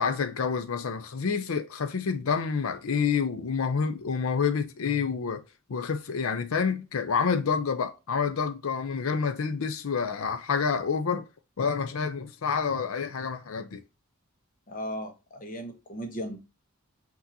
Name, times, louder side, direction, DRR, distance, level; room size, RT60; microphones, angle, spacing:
voice 1, 0.0-5.4 5.7-11.2 11.6-13.8, left 6 dB, 75° left, 0.5 m, -28 dB
voice 2, 14.7-16.4, equal, 40° left, 1.1 m, -36 dB
5.7 x 2.8 x 2.7 m
head